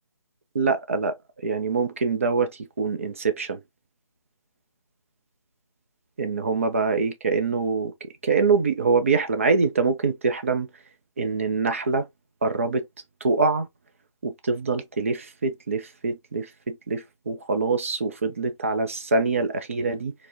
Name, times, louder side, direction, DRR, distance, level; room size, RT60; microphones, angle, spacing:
voice 1, 0.5-1.2 1.4-2.5 2.8-3.6 6.2-10.7 11.2-12.1 12.4-12.9 13.2-13.7 14.2-20.1, right 4 dB, 25° right, 0.4 m, -24 dB
4.2 x 2.1 x 2.5 m
figure-of-eight pair, 150°, 17 cm